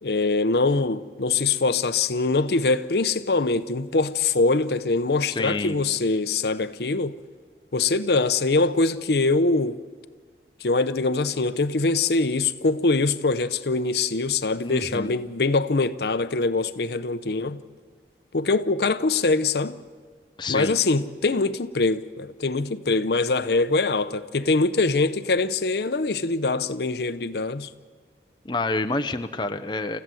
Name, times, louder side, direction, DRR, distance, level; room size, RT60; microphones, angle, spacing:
voice 1, 0.0-7.2 7.7-9.8 10.6-17.6 18.3-19.8 20.5-27.7, left 3 dB, 65° left, 0.7 m, -23 dB
voice 2, 5.3-5.8 14.6-15.1 20.4-20.7 28.4-30.0, left 2 dB, 25° left, 0.7 m, -28 dB
28.5 x 15.0 x 7.7 m
head